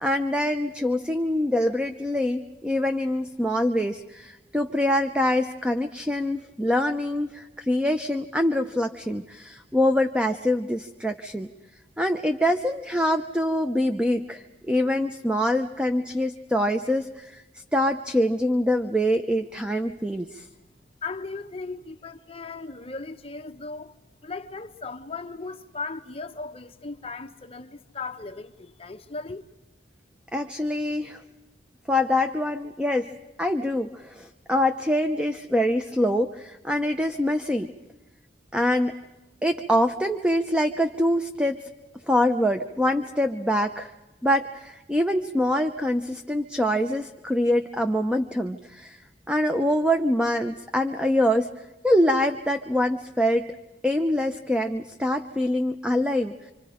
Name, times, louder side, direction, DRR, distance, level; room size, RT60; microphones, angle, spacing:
voice 1, 0.0-11.5 12.0-17.4 17.7-20.5 30.3-31.2 31.9-33.1 33.4-37.7 38.5-38.9 39.4-41.6 42.1-43.9 44.2-49.0 49.3-51.5 51.8-53.4 53.8-56.3, left 1 dB, 5° right, 0.8 m, -24 dB
voice 2, 21.0-23.9 24.2-29.4, left 4 dB, 35° left, 0.9 m, -37 dB
27.0 x 26.0 x 5.1 m
head